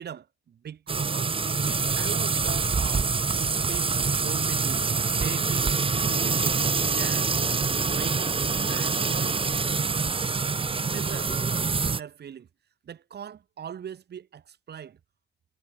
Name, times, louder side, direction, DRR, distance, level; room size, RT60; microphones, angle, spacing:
voice 1, 0.0-1.3 1.7-3.1 3.4-3.9 4.2-4.8 5.2-5.8 6.0-6.6 7.0-7.3 7.8-8.4 8.7-10.1 10.8-12.5 12.9-15.0, right 8 dB, 55° right, 3.9 m, -40 dB
sound 1, 0.9-12.0, right 4 dB, 25° right, 1.3 m, -25 dB
cardioid pair, 90°, 20 cm